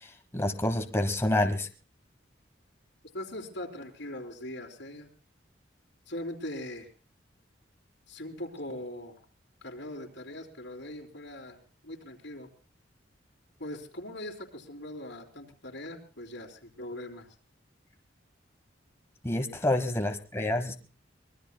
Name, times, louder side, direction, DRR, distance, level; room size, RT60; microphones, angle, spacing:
voice 1, 0.3-1.7 19.2-20.7, left 1 dB, 15° left, 5 dB, 1.1 m, -28 dB
voice 2, 3.1-5.1 6.1-6.9 8.1-9.2 9.6-12.5 13.6-17.3, left 1 dB, 75° left, -2 dB, 3.2 m, -41 dB
24.5 x 20.0 x 2.2 m, 0.38 s
head